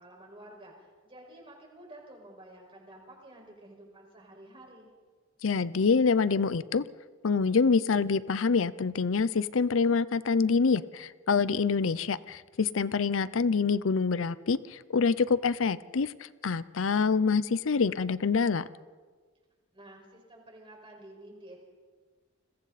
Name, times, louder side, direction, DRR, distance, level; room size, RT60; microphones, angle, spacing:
voice 1, 0.0-4.9 19.7-21.6, right 1 dB, 25° right, 0 dB, 5.3 m, -51 dB
voice 2, 5.4-6.8 7.2-18.7, left 5 dB, 75° left, 17 dB, 0.6 m, -26 dB
29.5 x 22.0 x 4.2 m, 1.5 s
head